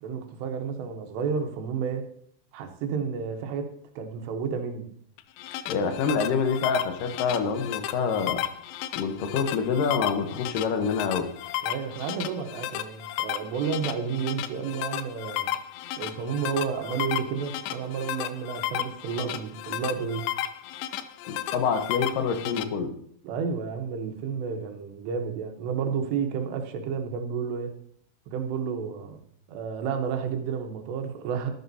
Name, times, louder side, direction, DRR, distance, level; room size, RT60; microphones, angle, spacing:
voice 1, 0.0-2.1 2.5-4.9 11.6-15.5 16.0-20.3 23.2-27.8 28.3-29.2 29.5-31.5, right 6 dB, 85° right, 5 dB, 3.2 m, -31 dB
sound 1, 5.2-22.6, left 13 dB, 85° left, 2.1 m, -33 dB
voice 2, 5.7-8.4 9.0-11.3 21.3-22.9, left 5 dB, 70° left, 7 dB, 2.2 m, -26 dB
13.5 x 10.5 x 2.7 m, 0.67 s
omnidirectional pair, 4.8 m